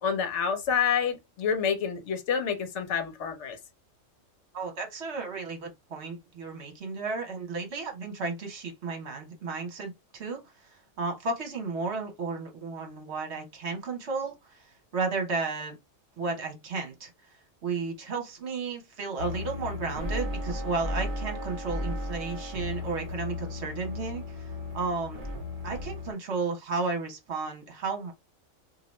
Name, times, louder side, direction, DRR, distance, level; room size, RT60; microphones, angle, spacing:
voice 1, 0.0-3.6, left 7 dB, 65° left, 1.1 m, -28 dB
voice 2, 4.5-15.8 16.2-17.1 17.6-25.2 25.6-28.1, right 4 dB, 60° right, 1.3 m, -33 dB
sound 1, 19.2-26.1, left 2 dB, 40° right, 1.7 m, -35 dB
2.9 x 2.6 x 3.1 m
omnidirectional pair, 1.4 m